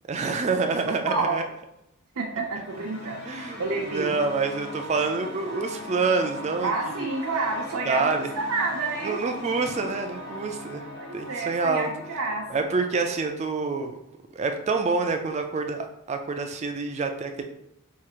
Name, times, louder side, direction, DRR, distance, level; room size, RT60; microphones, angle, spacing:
voice 1, 0.1-1.4 3.2-7.1 7.9-8.3 9.0-10.8 11.1-11.9 12.5-14.0 14.3-17.4, right 4 dB, 30° right, 5 dB, 0.3 m, -27 dB
voice 2, 0.9-1.3 2.2-4.1 6.6-9.2 10.9-12.7, right 3 dB, 85° right, -3 dB, 0.6 m, -29 dB
sound 1, 2.2-13.3, left 1 dB, 45° left, 0.8 m, -40 dB
4.7 x 2.4 x 2.8 m, 0.82 s
head